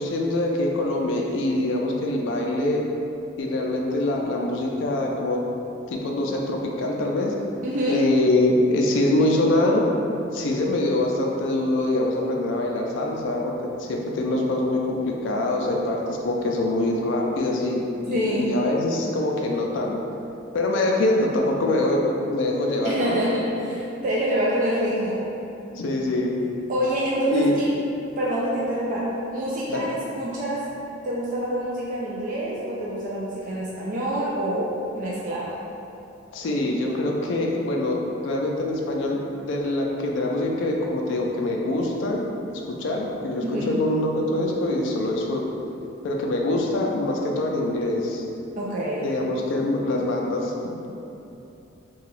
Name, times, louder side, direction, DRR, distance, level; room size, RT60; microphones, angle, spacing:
voice 1, 0.0-2.9 3.4-5.4 5.9-7.3 7.9-9.9 10.3-13.5 13.8-20.0 20.5-23.2 25.8-26.4 27.3-27.6 29.7-29.9 36.3-45.4 46.0-48.2 49.0-50.9, left 1 dB, 70° left, -1 dB, 0.3 m, -24 dB
voice 2, 7.6-8.0 18.1-18.5 22.8-25.2 26.7-27.7 28.2-30.7 31.0-35.6 43.4-43.8 48.6-49.0, equal, 45° right, -6 dB, 0.3 m, -26 dB
2.8 x 2.3 x 3.0 m, 2.8 s
head